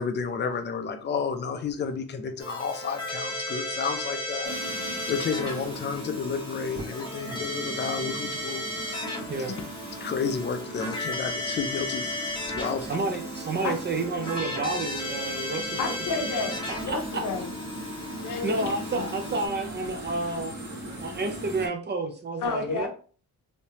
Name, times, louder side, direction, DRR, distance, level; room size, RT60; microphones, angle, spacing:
voice 1, 0.0-9.0 10.0-12.1 12.5-12.9, left 5 dB, 30° left, 6 dB, 0.5 m, -31 dB
Keyboard (musical), 2.4-19.5, left 1 dB, 15° left, 0.8 m, -35 dB
sound 1, 4.4-21.7, right 1 dB, 50° right, 1.2 m, -40 dB
voice 2, 12.8-15.8 16.9-17.2 18.4-20.5 21.0-22.9, right 3 dB, 30° right, 5 dB, 0.4 m, -30 dB
voice 3, 15.8-16.6 16.8-17.5 18.2-18.7 18.9-19.1 22.4-22.9, left 4 dB, 60° left, 4 dB, 0.8 m, -30 dB
3.3 x 2.8 x 2.9 m, 0.41 s
cardioid pair, 140°, 35 cm